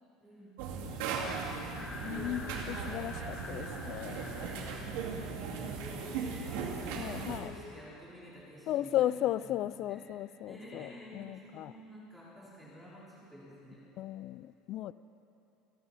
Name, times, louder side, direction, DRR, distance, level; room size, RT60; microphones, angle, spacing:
voice 1, 0.2-1.6 4.4-13.8, equal, 10° right, -8 dB, 4.3 m, -51 dB
sound 1, 0.6-7.4, right 5 dB, 90° right, 2.3 m, -38 dB
sound 2, 1.7-5.3, left 3 dB, 20° left, 1.3 m, -46 dB
voice 2, 2.0-4.2 6.9-7.5 8.7-11.7 14.0-14.9, left 13 dB, 50° left, 16 dB, 0.3 m, -35 dB
29.5 x 11.0 x 4.1 m, 2.9 s
cardioid pair, 140°, 0 cm